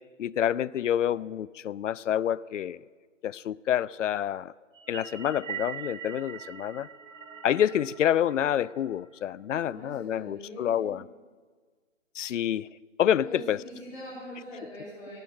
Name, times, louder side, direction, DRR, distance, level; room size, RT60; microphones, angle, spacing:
voice 1, 0.0-2.8 3.2-4.5 4.9-6.9 7.4-11.0 12.2-12.7 13.0-13.6, left 10 dB, 70° left, 21 dB, 0.5 m, -28 dB
sound 1, 4.7-9.3, right 8 dB, 75° right, 1.8 m, -42 dB
voice 2, 9.6-11.0 13.2-15.2, equal, 10° left, -11 dB, 4.0 m, -43 dB
18.0 x 8.0 x 8.6 m, 1.6 s
hypercardioid pair, 155°, 39 cm